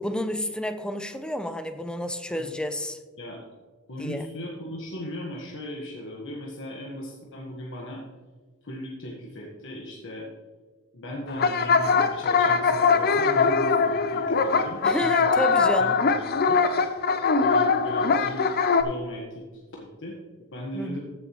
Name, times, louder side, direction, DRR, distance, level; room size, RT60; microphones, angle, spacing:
voice 1, 0.0-3.0 4.0-4.3 14.8-16.0 20.7-21.0, equal, 5° left, 9 dB, 0.6 m, -30 dB
voice 2, 3.9-8.0 8.6-10.3 10.9-15.3 15.8-16.6 17.4-19.4 19.8-20.1 20.5-21.0, left 1 dB, 60° left, -2 dB, 1.4 m, -37 dB
sound 1, 11.3-18.8, left 5 dB, 45° left, 0.6 m, -22 dB
14.0 x 6.9 x 3.1 m, 1.4 s
head